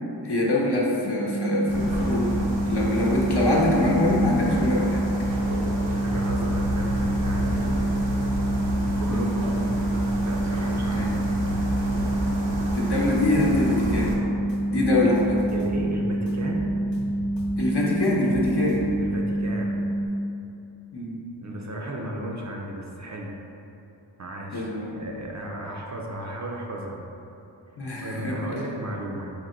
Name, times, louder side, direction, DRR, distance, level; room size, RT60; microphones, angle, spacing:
voice 1, 0.2-5.0 9.1-9.3 10.9-11.2 12.8-14.2 14.7-15.4 17.6-18.9 20.9-21.2 24.5-24.9 27.8-28.5, left 1 dB, 60° left, -4 dB, 0.8 m, -24 dB
sound 1, 1.0-20.1, right 1 dB, 15° left, 0.5 m, -27 dB
sound 2, 1.7-14.2, right 1 dB, 80° right, 0.7 m, -30 dB
voice 2, 6.0-8.0 9.0-9.6 10.2-11.1 15.5-16.8 19.0-19.9 21.4-23.3 24.2-27.0 28.0-29.3, right 1 dB, 40° right, -1 dB, 0.5 m, -34 dB
sound 3, 12.1-12.3 12.7-14.1 14.5-15.8 16.3-17.6 18.0-19.2, equal, 85° left, 1.0 m, -39 dB
4.5 x 2.2 x 3.7 m, 2.8 s
wide cardioid pair, 45°, 45 cm